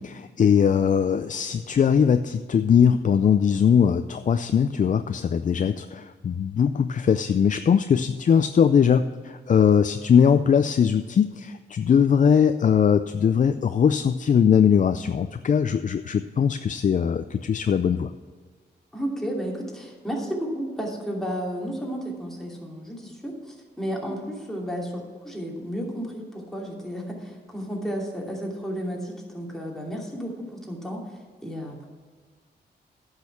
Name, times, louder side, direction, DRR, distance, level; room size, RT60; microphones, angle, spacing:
voice 1, 0.0-18.1, left 7 dB, 45° left, 10 dB, 0.4 m, -20 dB
voice 2, 18.9-31.9, equal, ahead, -2 dB, 2.8 m, -32 dB
10.5 x 6.4 x 7.0 m, 1.5 s
cardioid pair, 80°, 18 cm